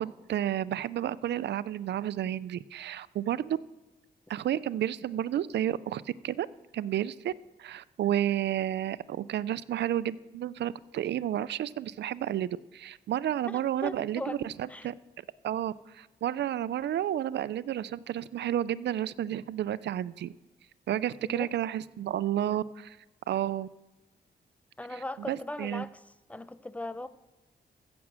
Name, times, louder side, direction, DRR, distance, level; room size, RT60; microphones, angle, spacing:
voice 1, 0.0-3.6 4.3-6.5 6.7-7.3 7.6-14.9 15.4-20.3 20.9-23.0 23.3-23.7 24.9-25.8, right 11 dB, 75° right, 17 dB, 0.5 m, -31 dB
voice 2, 13.5-14.9 21.2-21.5 24.8-26.0 26.3-27.1, left 2 dB, 10° left, 14 dB, 0.6 m, -39 dB
14.5 x 6.1 x 7.4 m, 1.1 s
cardioid pair, 110°, 18 cm